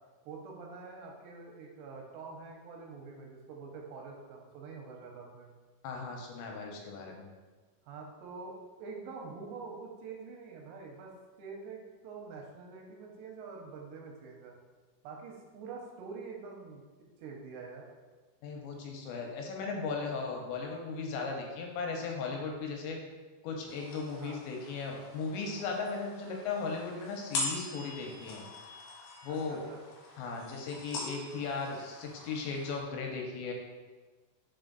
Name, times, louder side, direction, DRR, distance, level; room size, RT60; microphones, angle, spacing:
voice 1, 0.3-5.5 7.8-14.6 15.0-17.8 24.2-24.4 29.3-29.8, right 4 dB, 85° right, 0 dB, 2.8 m, -46 dB
voice 2, 5.8-7.3 18.4-23.0 23.4-28.4 29.2-29.6 30.2-33.5, left 4 dB, 90° left, 1 dB, 3.0 m, -37 dB
sound 1, 23.7-32.8, left 2 dB, 65° left, 2.5 m, -43 dB
5.8 x 4.5 x 3.9 m, 1.4 s
omnidirectional pair, 5.2 m